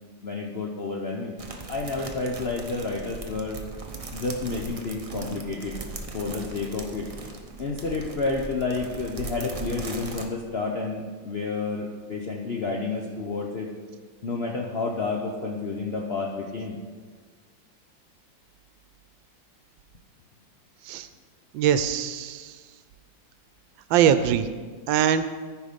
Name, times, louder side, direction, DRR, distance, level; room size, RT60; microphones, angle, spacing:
voice 1, 0.2-1.4 1.7-3.7 4.1-5.8 6.1-7.1 7.6-13.7 14.2-16.8, left 3 dB, 60° left, 0 dB, 0.6 m, -30 dB
sound 1, 1.4-10.3, right 3 dB, 65° right, 0.3 m, -38 dB
voice 2, 21.5-22.5 23.9-24.5 24.9-25.2, right 9 dB, 85° right, 11 dB, 1.3 m, -22 dB
13.5 x 4.9 x 5.1 m, 1.5 s
omnidirectional pair, 2.1 m